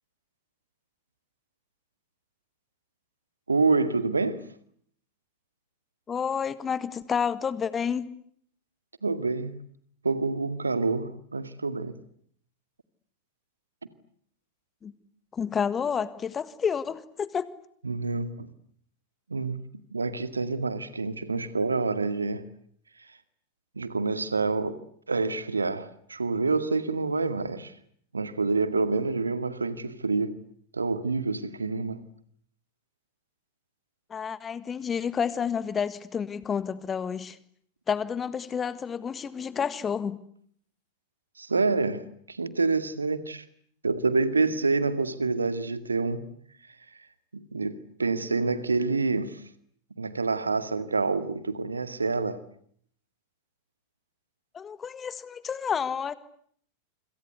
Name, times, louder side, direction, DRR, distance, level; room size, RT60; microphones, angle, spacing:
voice 1, 3.5-4.5 9.0-9.6 10.0-12.0 17.8-18.5 19.3-19.6 19.9-22.4 23.8-24.8 25.1-27.7 28.1-30.4 30.7-32.0 41.4-43.4 43.8-46.2 47.3-49.4 50.0-52.4, right 3 dB, 75° right, 2.1 m, -27 dB
voice 2, 6.1-8.1 14.8-14.9 15.3-17.5 34.1-37.4 37.9-40.2 54.5-56.1, left 7 dB, 20° left, 1.7 m, -30 dB
27.5 x 26.5 x 8.2 m
figure-of-eight pair, 90°, 0 cm